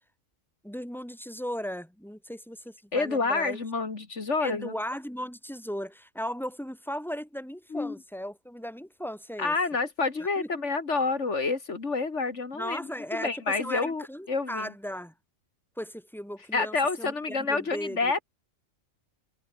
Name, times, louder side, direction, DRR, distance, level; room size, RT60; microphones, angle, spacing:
voice 1, 0.6-3.6 4.4-9.5 10.4-10.5 12.5-15.1 15.8-18.1, equal, ahead, 7.9 m, -37 dB
voice 2, 2.9-4.7 7.7-8.0 9.4-14.7 16.5-18.2, left 4 dB, 70° left, 2.7 m, -28 dB
omnidirectional pair, 1.3 m